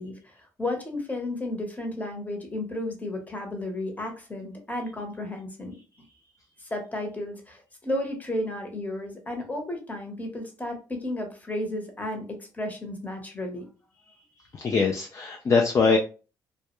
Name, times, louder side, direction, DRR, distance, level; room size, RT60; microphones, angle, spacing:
voice 1, 0.0-5.7 6.6-13.7, left 1 dB, 20° left, 3 dB, 0.9 m, -33 dB
voice 2, 14.5-16.0, left 4 dB, 40° left, 2 dB, 0.4 m, -22 dB
2.2 x 2.1 x 2.9 m, 0.34 s
supercardioid pair, 70°, 8 cm